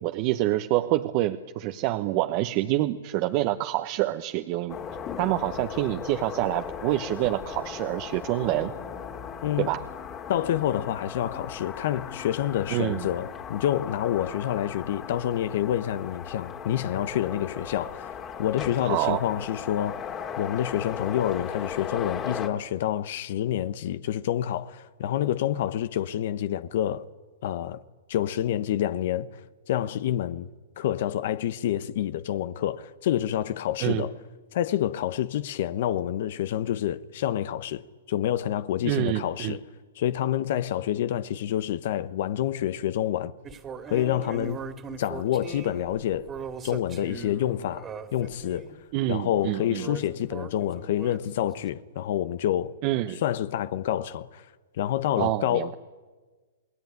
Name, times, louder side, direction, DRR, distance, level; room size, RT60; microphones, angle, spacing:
voice 1, 0.0-4.8 5.2-8.7 9.6-9.8 12.7-13.1 18.8-19.2 33.8-34.1 38.8-39.6 48.9-49.9 52.8-53.2 55.2-55.7, right 15 dB, 40° right, 1.0 m, -27 dB
sound 1, 4.7-22.5, left 7 dB, 25° left, 2.5 m, -37 dB
voice 2, 10.3-20.0 20.4-27.1 27.4-27.8 28.1-30.5 30.8-34.1 34.5-39.6 40.0-43.3 43.9-44.6 45.0-46.3 46.6-48.8 49.1-52.7 53.2-54.5 54.8-55.7, left 11 dB, 60° left, 0.9 m, -28 dB
sound 2, 43.4-48.7 49.4-51.7, right 5 dB, 20° right, 2.4 m, -40 dB
28.5 x 19.5 x 9.5 m
hypercardioid pair, 140°, 0 cm